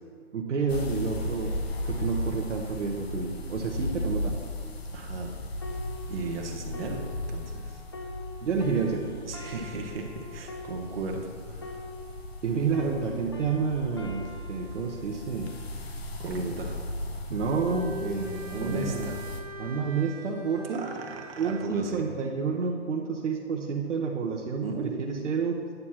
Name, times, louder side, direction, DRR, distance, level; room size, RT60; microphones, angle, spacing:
voice 1, 0.3-1.5 1.8-4.4 8.4-9.1 12.4-15.5 16.2-16.6 17.3-19.2 19.6-20.8 21.4-25.7, right 5 dB, 75° right, 0 dB, 1.1 m, -29 dB
Calm Ocean Breeze Simulation, 0.7-19.4, left 1 dB, 55° left, 1.1 m, -36 dB
voice 2, 4.9-5.4 6.1-7.0 7.3-8.1 9.2-11.8 16.2-16.8 18.6-19.2 20.7-22.0 24.6-25.3, right 3 dB, 50° right, 1 dB, 1.4 m, -36 dB
sound 1, 5.6-12.5 12.7-16.3 17.0-17.2, left 3 dB, 25° left, 0.4 m, -45 dB
Bowed string instrument, 17.3-21.8, equal, 35° right, 0.6 m, -41 dB
9.4 x 4.6 x 5.7 m, 2.2 s
hypercardioid pair, 165°, 36 cm